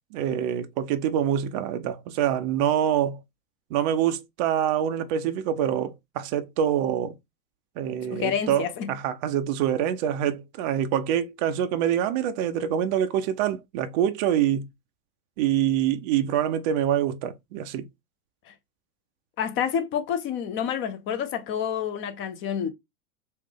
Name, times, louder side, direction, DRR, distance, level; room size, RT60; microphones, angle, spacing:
voice 1, 0.1-3.2 3.7-7.1 7.8-14.7 15.4-17.9, right 10 dB, 30° right, 0.4 m, -25 dB
voice 2, 8.1-8.9 18.5-18.6 19.4-22.7, left 8 dB, 25° left, 0.5 m, -28 dB
3.3 x 2.5 x 3.3 m
figure-of-eight pair, 95°, 46 cm